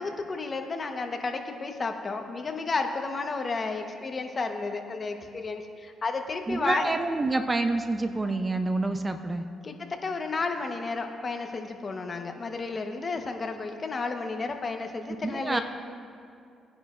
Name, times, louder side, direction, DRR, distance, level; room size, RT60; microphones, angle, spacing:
voice 1, 0.0-6.9 9.6-15.6, left 3 dB, 35° left, 4 dB, 1.0 m, -32 dB
voice 2, 6.5-9.4 15.2-15.6, right 2 dB, 25° right, 7 dB, 0.6 m, -27 dB
20.5 x 10.0 x 2.5 m, 2.4 s
cardioid pair, 90°, 0 cm